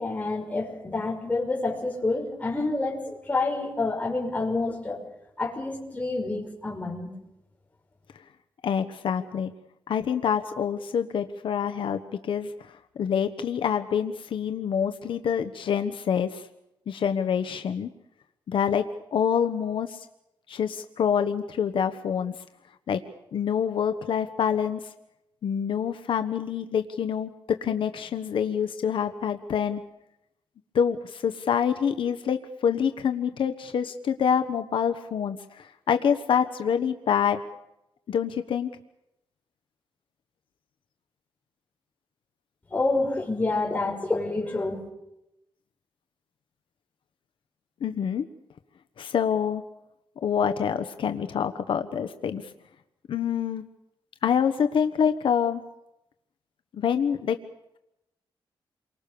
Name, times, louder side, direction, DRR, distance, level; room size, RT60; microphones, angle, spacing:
voice 1, 0.0-5.0 5.4-7.1 42.7-44.9, left 3 dB, 15° left, -1 dB, 5.9 m, -28 dB
voice 2, 8.6-9.5 9.9-12.5 13.0-16.5 16.9-17.9 18.5-20.1 20.5-22.3 22.9-23.0 23.3-24.9 25.4-29.8 30.7-37.4 38.1-38.7 47.8-48.3 49.0-49.6 50.2-52.5 53.1-53.6 54.2-55.6 56.7-57.4, left 7 dB, 70° left, 8 dB, 1.2 m, -26 dB
29.0 x 24.0 x 7.0 m, 0.85 s
wide cardioid pair, 180°, 9 cm